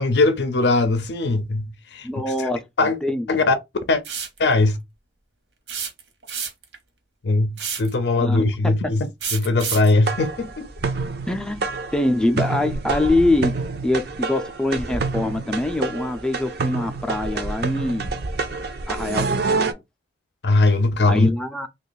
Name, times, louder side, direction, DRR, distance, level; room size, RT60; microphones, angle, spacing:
voice 1, 0.0-2.1 2.4-2.5 2.8-3.0 3.3-3.5 3.9-4.0 4.4-4.8 7.2-10.6 20.4-21.3, left 2 dB, 65° left, 0.5 m, -20 dB
voice 2, 2.0-2.6 3.0-3.4 8.2-8.4 8.6-8.7 11.3-13.5 13.8-18.2 18.9-19.7 21.1-21.7, left 1 dB, 5° left, 0.4 m, -24 dB
sound 1, 4.0-4.4 5.7-6.8 7.6-7.9 9.2-9.9, right 6 dB, 80° right, 1.0 m, -29 dB
sound 2, 10.1-19.7, right 4 dB, 60° right, 0.5 m, -27 dB
3.0 x 2.3 x 3.9 m
head